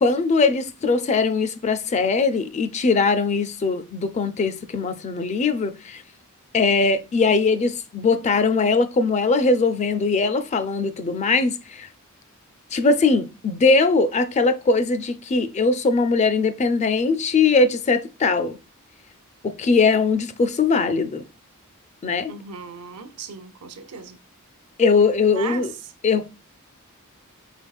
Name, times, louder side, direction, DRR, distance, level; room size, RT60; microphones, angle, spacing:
voice 1, 0.0-6.0 6.5-11.9 12.7-18.6 19.4-21.2 22.0-22.3 24.8-25.7 26.0-26.3, left 4 dB, 30° left, 0.4 m, -20 dB
voice 2, 22.3-24.2 25.3-25.9, right 5 dB, 85° right, 0.6 m, -36 dB
5.1 x 4.0 x 2.3 m
head